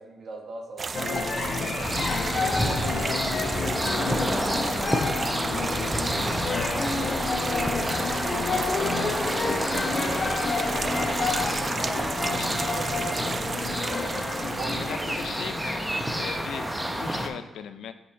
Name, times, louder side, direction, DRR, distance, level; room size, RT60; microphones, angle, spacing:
voice 1, 0.0-4.5 4.9-8.4 8.9-10.3 10.8-14.1 14.5-15.1, right 3 dB, 60° right, 1 dB, 1.5 m, -42 dB
sound 1, 0.8-15.6, right 4 dB, 35° right, 0.3 m, -34 dB
sound 2, 0.9-17.1, left 4 dB, 45° left, 0.7 m, -30 dB
sound 3, 1.8-17.3, equal, 5° right, 0.7 m, -30 dB
voice 2, 2.0-2.3 12.4-12.5 14.8-15.8 16.1-17.9, left 8 dB, 80° left, 11 dB, 0.4 m, -39 dB
5.5 x 5.3 x 4.3 m, 1.2 s
cardioid pair, 110°, 0 cm